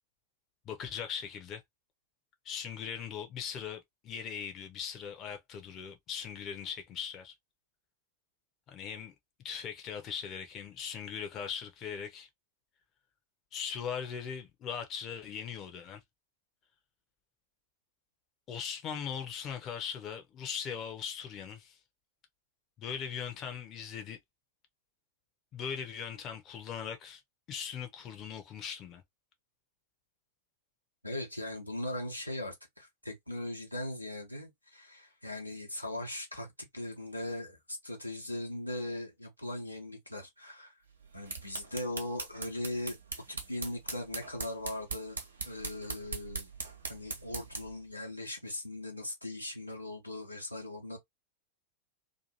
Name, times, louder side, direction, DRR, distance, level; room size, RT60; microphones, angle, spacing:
voice 1, 0.7-1.6 2.4-7.3 8.7-9.1 9.4-12.3 13.5-16.0 18.5-21.8 22.8-24.2 25.5-27.2 27.5-29.0, left 7 dB, 30° left, 0.6 m, -39 dB
voice 2, 31.0-36.5 36.7-40.7 41.1-43.0 43.3-45.2 45.4-46.5 46.9-51.0, left 1 dB, 90° left, 0.9 m, -39 dB
sound 1, 41.0-47.8, right 4 dB, 75° right, 0.7 m, -41 dB
2.6 x 2.5 x 2.7 m
figure-of-eight pair, 90°, 0 cm